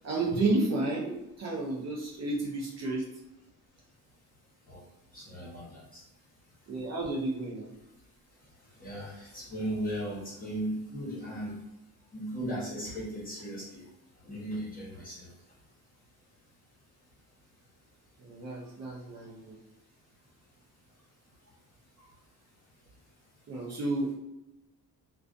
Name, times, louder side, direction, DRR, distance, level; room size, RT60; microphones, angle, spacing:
voice 1, 0.0-3.1 6.7-7.7 18.2-19.6 23.5-24.1, right 2 dB, 45° right, -1 dB, 0.5 m, -31 dB
voice 2, 4.6-6.0 8.4-11.6 12.1-13.9 14.2-15.3, right 1 dB, 25° left, -6 dB, 1.0 m, -37 dB
2.3 x 2.2 x 2.5 m, 0.89 s
cardioid pair, 125°, 37 cm